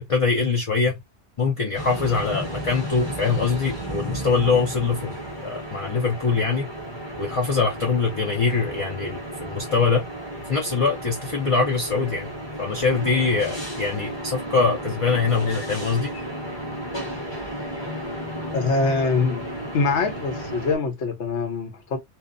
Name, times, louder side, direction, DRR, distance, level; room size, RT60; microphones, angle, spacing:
voice 1, 0.1-1.0 1.4-5.1 5.4-6.7 7.2-10.0 10.5-12.3 12.6-16.1, left 4 dB, 40° left, 0.5 m, -23 dB
sound 1, 1.7-20.8, equal, 25° left, 1.2 m, -33 dB
voice 2, 18.5-19.5 19.7-22.0, left 4 dB, 75° left, 1.1 m, -24 dB
2.8 x 2.1 x 2.4 m
omnidirectional pair, 1.2 m